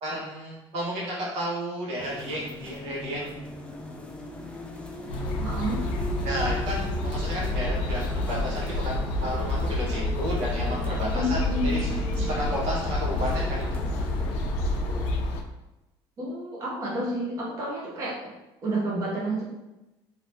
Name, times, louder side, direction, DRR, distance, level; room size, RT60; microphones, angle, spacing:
voice 1, 0.0-3.3 6.2-14.0, equal, 80° right, -5 dB, 1.2 m, -32 dB
sound 1, 2.0-15.1, left 1 dB, 10° left, 0.3 m, -38 dB
sound 2, 5.1-15.4, left 1 dB, 90° left, 0.5 m, -28 dB
voice 2, 5.4-5.8 11.1-12.6 16.2-18.2 18.6-19.4, right 1 dB, 35° right, -5 dB, 0.7 m, -30 dB
2.7 x 2.5 x 3.3 m, 0.99 s
cardioid pair, 150°, 10 cm